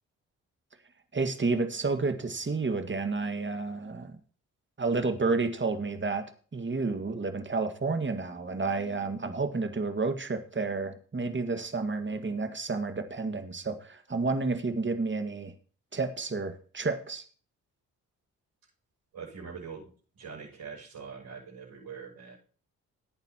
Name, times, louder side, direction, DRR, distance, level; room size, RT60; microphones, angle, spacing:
voice 1, 1.1-4.2 4.8-6.2 6.5-15.5 15.9-17.2, right 3 dB, 30° right, 8 dB, 1.8 m, -30 dB
voice 2, 19.1-22.4, right 6 dB, 70° right, -4 dB, 6.7 m, -43 dB
17.5 x 9.0 x 2.9 m, 0.41 s
hypercardioid pair, 45°, 38 cm